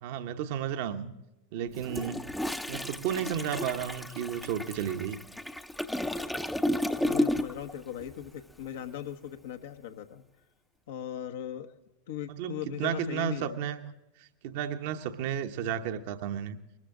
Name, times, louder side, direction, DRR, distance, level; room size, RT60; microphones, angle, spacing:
voice 1, 0.0-1.1 1.5-2.2 2.7-5.2 12.3-13.9 14.2-16.6, right 9 dB, 60° right, 8 dB, 1.0 m, -33 dB
Toilet flush, 1.7-7.7 8.0-8.3, left 1 dB, 5° left, 0.7 m, -32 dB
voice 2, 7.0-10.2 10.9-11.7 12.1-13.6, left 10 dB, 70° left, 7 dB, 1.2 m, -39 dB
21.0 x 13.5 x 3.8 m, 0.95 s
hypercardioid pair, 90°, 0 cm